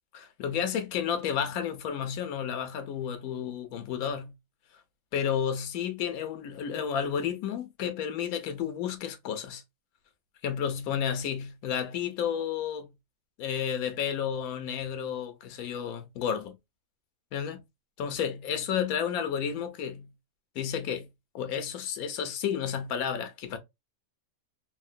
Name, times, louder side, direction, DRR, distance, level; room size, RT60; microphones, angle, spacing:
voice 1, 0.1-4.3 5.1-9.6 10.4-12.9 13.4-16.6 17.3-17.6 18.0-20.1 20.6-21.1 21.3-23.6, left 8 dB, 85° left, 1.1 m, -31 dB
3.5 x 2.1 x 2.5 m
omnidirectional pair, 1.5 m